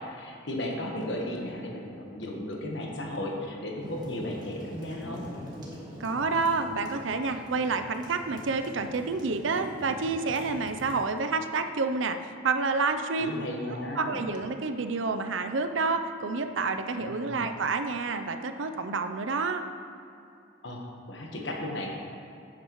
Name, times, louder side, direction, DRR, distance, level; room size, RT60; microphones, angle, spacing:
voice 1, 0.0-5.2 13.2-14.3 17.0-17.5 20.6-20.8 21.1-21.9, left 1 dB, 65° left, -1 dB, 1.3 m, -35 dB
sound 1, 3.8-11.0, equal, 20° right, 1.5 m, -43 dB
voice 2, 6.0-13.4 14.0-19.6, right 4 dB, 75° right, 8 dB, 0.6 m, -29 dB
11.0 x 8.7 x 3.1 m, 2.5 s
head